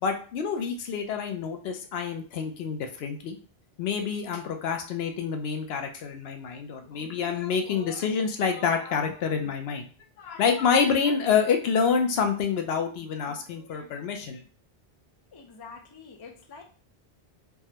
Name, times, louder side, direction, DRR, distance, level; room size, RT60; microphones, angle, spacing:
voice 1, 0.0-3.4 3.8-9.9 10.2-14.4, left 6 dB, 75° left, 5 dB, 0.8 m, -27 dB
voice 2, 15.3-16.6, left 5 dB, 40° left, 3 dB, 0.3 m, -46 dB
3.4 x 2.1 x 2.8 m, 0.39 s
omnidirectional pair, 1.1 m